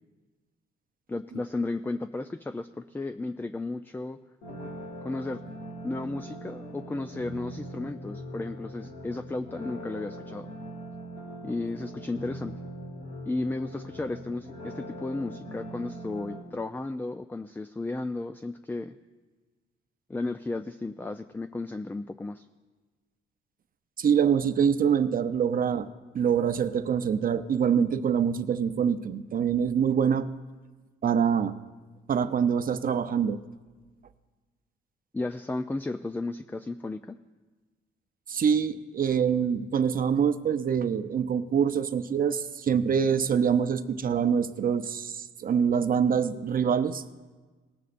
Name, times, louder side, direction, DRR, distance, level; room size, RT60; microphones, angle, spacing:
voice 1, 1.1-4.2 5.0-5.4 5.8-10.5 11.4-12.5 13.3-19.0 20.1-22.5 35.1-37.2, left 2 dB, 10° left, 10 dB, 0.4 m, -34 dB
sound 1, 4.4-16.4, right 1 dB, 75° left, 2.4 m, -41 dB
voice 2, 24.0-25.9 26.1-30.3 31.0-31.6 32.1-33.4 38.3-47.0, right 7 dB, 45° right, 10 dB, 0.6 m, -25 dB
19.0 x 12.0 x 2.6 m, 1.3 s
cardioid pair, 90°, 20 cm